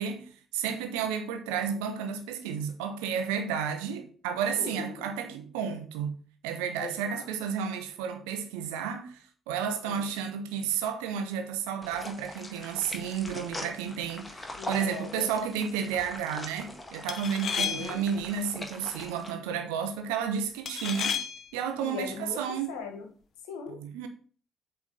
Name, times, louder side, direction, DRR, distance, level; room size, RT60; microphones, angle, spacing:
voice 1, 0.0-6.1 6.4-9.2 9.5-21.2 21.5-22.7 23.7-24.1, right 7 dB, 70° right, 1.0 m, -32 dB
voice 2, 4.6-5.1 6.8-7.3 9.8-10.1 14.5-15.5 17.5-18.0 21.8-23.1 23.4-23.8, left 5 dB, 70° left, 1.4 m, -40 dB
sound 1, 11.8-19.3, left 1 dB, 20° left, 1.8 m, -42 dB
sound 2, 14.7-15.0 17.1-18.2 20.7-21.6, left 6 dB, 50° left, 0.9 m, -33 dB
8.2 x 3.6 x 5.6 m
figure-of-eight pair, 45°, 0 cm